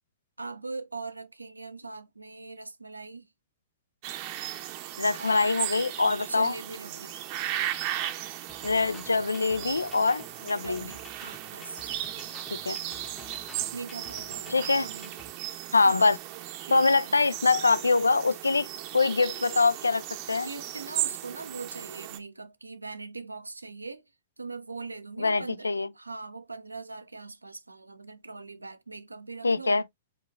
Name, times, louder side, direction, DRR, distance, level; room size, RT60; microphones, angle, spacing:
voice 1, 0.4-3.3 5.2-5.6 6.0-7.2 10.6-12.1 13.7-15.1 15.4-15.5 15.8-16.1 16.7-17.2 20.4-24.0 24.4-29.8, right 3 dB, 85° right, 0.4 m, -41 dB
sound 1, 4.0-22.2, right 13 dB, 45° right, 0.6 m, -36 dB
voice 2, 5.0-6.5 8.6-10.8 12.7-12.8 14.5-14.8 15.7-16.2 16.7-20.5 25.2-25.9 29.4-29.8, left 3 dB, 80° left, 0.3 m, -24 dB
sound 2, 8.5-15.3, left 2 dB, 15° left, 0.8 m, -50 dB
4.6 x 2.3 x 3.4 m
figure-of-eight pair, 100°, 0 cm